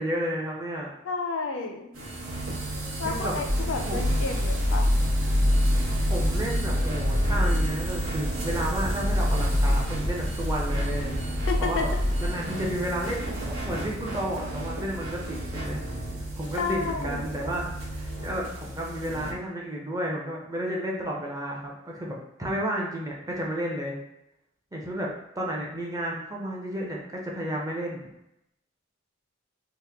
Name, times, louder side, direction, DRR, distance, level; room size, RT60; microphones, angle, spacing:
voice 1, 0.0-0.9 3.0-3.3 3.9-4.2 6.1-11.1 11.6-11.9 12.2-15.8 16.4-17.6 18.0-24.0 24.7-28.1, right 1 dB, 15° right, -2 dB, 0.5 m, -32 dB
voice 2, 1.0-1.9 3.0-4.9 11.5-11.9 16.5-17.2, left 4 dB, 70° left, 4 dB, 0.4 m, -31 dB
sound 1, 1.9-19.3, right 2 dB, 85° right, 1.0 m, -34 dB
sound 2, 3.5-12.3, left 1 dB, 60° right, 0.8 m, -26 dB
2.9 x 2.1 x 3.4 m, 0.86 s
head